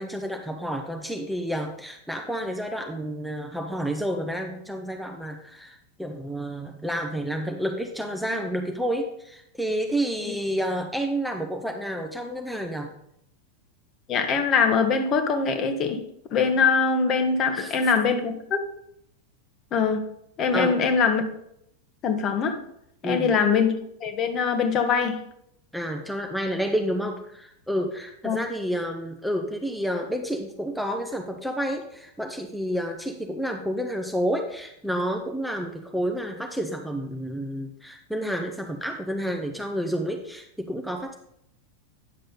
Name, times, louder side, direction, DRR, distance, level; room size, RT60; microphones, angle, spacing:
voice 1, 0.0-12.9 17.5-17.7 20.5-20.8 23.0-23.3 25.7-41.1, equal, ahead, 2 dB, 0.8 m, -30 dB
voice 2, 14.1-16.0 16.3-18.6 19.7-20.1 20.4-21.2 22.0-22.6 23.0-23.7 24.0-25.2 28.2-28.4, left 5 dB, 30° left, 7 dB, 1.2 m, -22 dB
9.7 x 6.5 x 4.0 m, 0.74 s
figure-of-eight pair, 90°, 0 cm